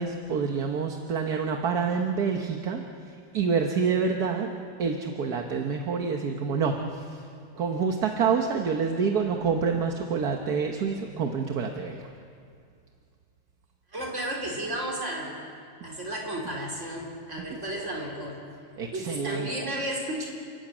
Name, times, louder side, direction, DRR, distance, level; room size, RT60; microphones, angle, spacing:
voice 1, 0.0-4.5 4.8-7.3 7.5-12.1 15.8-15.9 18.8-19.7, right 5 dB, 50° right, 3 dB, 1.5 m, -27 dB
voice 2, 13.9-15.3 15.8-18.4 18.9-20.3, right 1 dB, 30° right, -1 dB, 4.4 m, -33 dB
29.5 x 13.5 x 8.9 m, 2.4 s
omnidirectional pair, 2.4 m